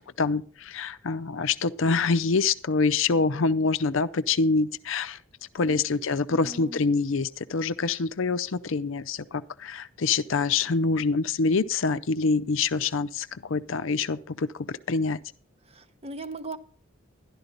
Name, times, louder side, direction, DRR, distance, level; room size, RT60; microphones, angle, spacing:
voice 1, 0.0-5.2 5.5-15.2, left 4 dB, 70° left, 0.6 m, -26 dB
voice 2, 6.3-6.9 15.7-16.6, right 2 dB, 30° right, 0.8 m, -39 dB
12.0 x 11.5 x 4.0 m
head